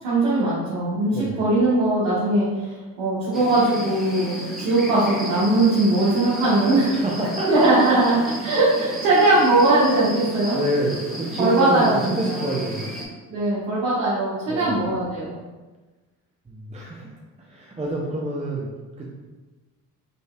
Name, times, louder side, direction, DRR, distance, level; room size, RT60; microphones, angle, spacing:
voice 1, 0.0-6.9 7.5-10.6 11.4-12.5 13.3-15.3, right 2 dB, 80° right, -10 dB, 1.5 m, -20 dB
sound 1, 3.3-13.1, right 1 dB, ahead, 1.3 m, -34 dB
voice 2, 6.9-7.7 8.1-8.2 10.5-11.9 12.2-12.9 14.5-14.8 16.5-17.1 17.5-18.7 19.0-19.1, right 1 dB, 15° right, -3 dB, 0.8 m, -27 dB
5.3 x 3.1 x 2.5 m, 1.2 s
supercardioid pair, 65°, 41 cm